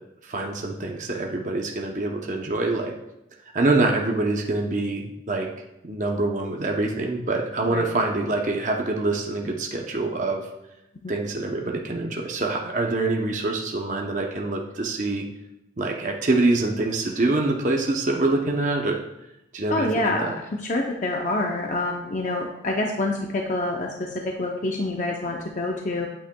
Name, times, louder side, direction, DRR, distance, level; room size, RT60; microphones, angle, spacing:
voice 1, 0.2-2.9 3.5-5.5 5.8-10.5 11.1-15.3 15.8-19.0 19.5-20.3, right 2 dB, 40° right, 1 dB, 0.7 m, -25 dB
voice 2, 19.7-20.4 20.7-26.1, left 2 dB, 40° left, 0 dB, 0.6 m, -27 dB
8.7 x 8.5 x 2.3 m, 0.89 s
head